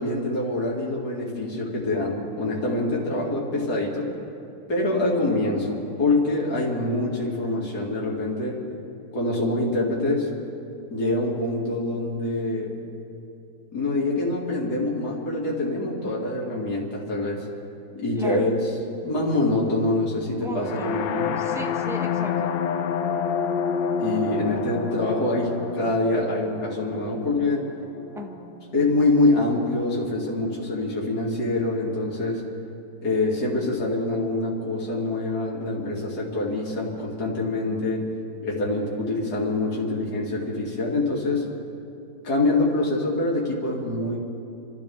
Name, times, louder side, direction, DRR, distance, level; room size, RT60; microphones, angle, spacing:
voice 1, 0.0-4.1 4.7-8.6 9.1-10.3 10.9-12.7 13.7-17.4 17.9-18.6 19.0-21.3 24.0-27.7 28.7-32.4 33.0-38.0 38.4-41.4 42.2-44.2, left 2 dB, 60° left, -4 dB, 3.0 m, -25 dB
voice 2, 18.2-18.5 20.4-21.1 21.4-22.6 28.1-28.8, right 1 dB, ahead, 2 dB, 0.8 m, -36 dB
sound 1, 20.6-28.5, left 7 dB, 90° left, 1.5 m, -28 dB
29.0 x 13.0 x 3.6 m, 2.7 s
omnidirectional pair, 1.9 m